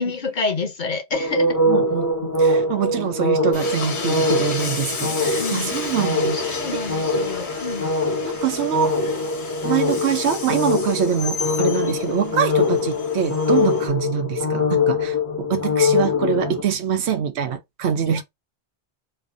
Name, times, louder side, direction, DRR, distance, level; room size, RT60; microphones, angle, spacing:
voice 1, 0.0-1.6 2.8-3.0 5.2-5.7 6.3-7.9 11.7-12.0 18.1-18.2, left 4 dB, 50° left, 0.9 m, -29 dB
sound 1, 1.1-16.6, left 2 dB, 20° left, 0.6 m, -23 dB
voice 2, 1.7-6.4 6.7-6.8 8.2-9.0 9.6-18.2, right 8 dB, 80° right, 1.0 m, -24 dB
Train, 3.5-13.9, left 4 dB, 80° left, 1.3 m, -33 dB
3.3 x 2.5 x 3.5 m
omnidirectional pair, 1.1 m